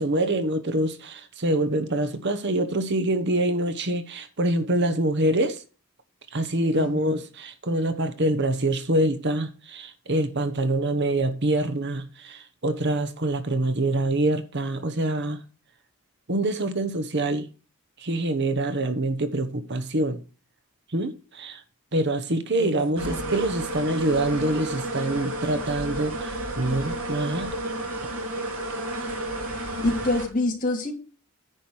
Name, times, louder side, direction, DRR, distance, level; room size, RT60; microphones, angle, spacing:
voice 1, 0.0-5.6 6.3-15.4 16.3-17.5 18.0-20.2 20.9-21.6 21.9-27.5, right 1 dB, 50° right, 1.1 m, -25 dB
voice 2, 6.7-7.1 22.6-23.3 29.5-30.9, left 2 dB, 35° left, 2.8 m, -28 dB
sound 1, 23.0-30.3, right 1 dB, 70° right, 3.0 m, -31 dB
10.0 x 5.1 x 6.2 m
head